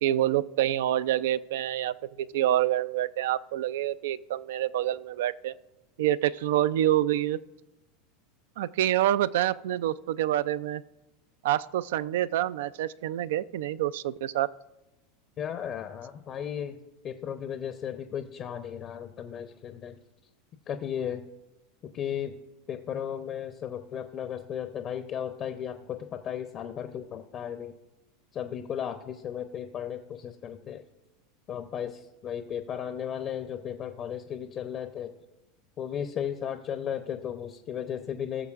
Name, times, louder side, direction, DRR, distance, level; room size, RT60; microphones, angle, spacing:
voice 1, 0.0-5.5 6.0-7.4 8.6-10.8 11.4-14.5, right 12 dB, 70° right, 16 dB, 0.3 m, -27 dB
voice 2, 15.4-16.8 17.0-20.0 20.7-21.2 21.9-22.4 22.7-27.8 28.3-30.8 31.5-35.1 35.8-38.5, left 9 dB, 40° left, 8 dB, 0.6 m, -35 dB
17.5 x 6.9 x 2.4 m, 1.0 s
hypercardioid pair, 95°, 0 cm